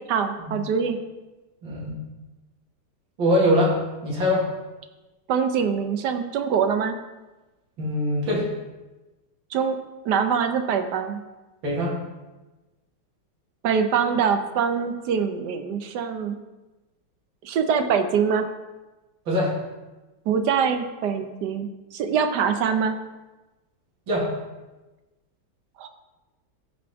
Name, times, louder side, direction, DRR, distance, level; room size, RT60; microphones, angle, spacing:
voice 1, 0.1-1.0 5.3-7.0 9.5-9.8 10.0-11.2 13.6-16.4 17.4-18.5 20.3-23.0 25.8-25.9, right 6 dB, 65° right, 8 dB, 1.3 m, -24 dB
voice 2, 1.6-2.0 3.2-3.8 4.0-4.5 7.8-8.5 11.6-12.0 19.3-19.5 24.1-24.3, equal, 85° right, -6 dB, 2.9 m, -22 dB
14.5 x 5.2 x 3.6 m, 1.1 s
omnidirectional pair, 2.1 m